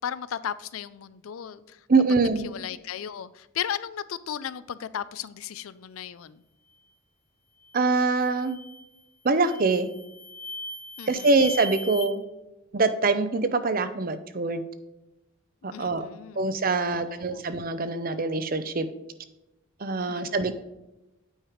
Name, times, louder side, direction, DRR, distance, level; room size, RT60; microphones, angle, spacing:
voice 1, 0.0-1.8 2.4-6.4 11.0-11.3 15.7-16.5 16.8-17.5 20.1-20.6, left 9 dB, 80° left, 0.4 m, -36 dB
voice 2, 1.9-2.4 7.7-8.6 9.2-9.9 11.1-12.2 12.7-14.6 15.6-16.1 16.4-18.9 19.8-20.6, right 3 dB, 45° right, 0.6 m, -24 dB
sound 1, 7.6-7.9 8.4-8.9 9.4-12.1, left 2 dB, 30° left, 1.2 m, -39 dB
8.8 x 5.0 x 4.9 m
head